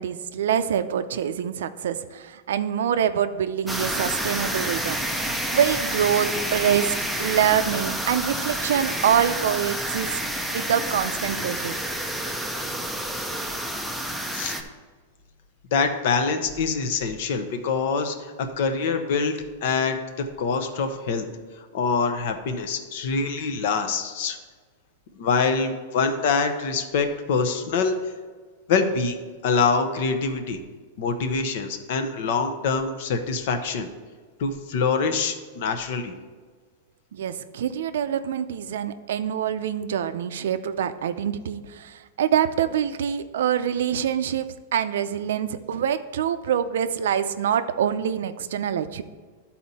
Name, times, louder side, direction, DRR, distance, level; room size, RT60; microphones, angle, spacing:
voice 1, 0.0-6.9 7.2-11.8 37.1-49.0, right 9 dB, 80° right, 12 dB, 0.5 m, -25 dB
sound 1, 3.7-14.6, right 1 dB, ahead, 0.5 m, -29 dB
voice 2, 15.7-21.3 21.7-24.4 25.2-27.9 28.7-29.2 29.4-30.6 31.0-33.9 34.4-36.1, left 5 dB, 55° left, 7 dB, 0.8 m, -25 dB
12.0 x 4.2 x 4.1 m, 1.5 s
supercardioid pair, 165°, 0 cm